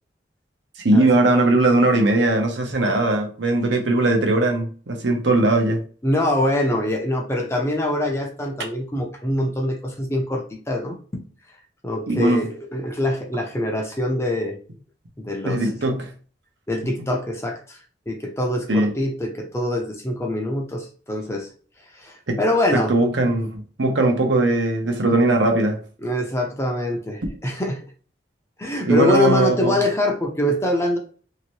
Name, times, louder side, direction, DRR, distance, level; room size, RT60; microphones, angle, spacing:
voice 1, 0.8-5.8 12.1-12.4 15.4-16.1 16.8-16.9 18.7-18.9 22.3-22.4 22.7-25.8 28.8-29.8, right 2 dB, 75° right, 2 dB, 0.8 m, -19 dB
voice 2, 6.0-11.2 11.8-14.6 15.2-15.7 16.7-17.8 18.1-21.5 21.9-22.9 26.0-27.8 28.6-31.0, left 1 dB, 15° left, 1 dB, 0.5 m, -24 dB
3.1 x 2.8 x 3.1 m, 0.40 s
head